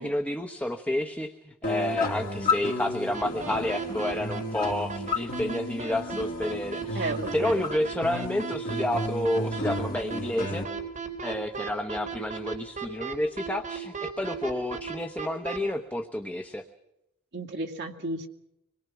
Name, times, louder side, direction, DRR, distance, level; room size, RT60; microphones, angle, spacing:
voice 1, 0.0-10.7 11.2-16.6, left 1 dB, 5° left, 5 dB, 1.0 m, -30 dB
sound 1, 1.6-10.6, left 2 dB, 40° left, 3.1 m, -33 dB
sound 2, 3.1-15.6, right 5 dB, 35° right, 3.8 m, -35 dB
voice 2, 6.9-7.6 17.3-18.3, right 2 dB, 50° right, 2 dB, 2.2 m, -33 dB
25.0 x 21.5 x 6.0 m, 0.86 s
head